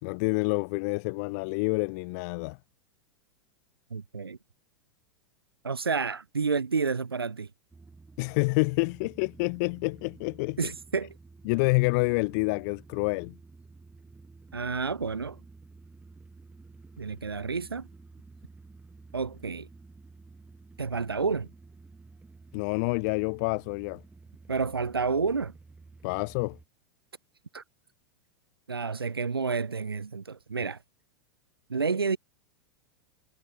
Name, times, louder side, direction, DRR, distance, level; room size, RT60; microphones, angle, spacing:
voice 1, 0.0-2.6 8.2-10.7 11.5-13.4 22.5-24.0 26.0-26.6, left 30 dB, 45° left, 1.8 m, -28 dB
voice 2, 3.9-4.4 5.6-7.5 10.6-11.1 14.5-15.4 17.0-17.9 19.1-19.7 20.8-21.5 24.5-25.5 27.5-27.6 28.7-30.8 31.7-32.2, right 5 dB, 80° right, 0.6 m, -30 dB
sound 1, 7.7-26.7, right 3 dB, 10° right, 7.4 m, -52 dB
figure-of-eight pair, 90°, 12 cm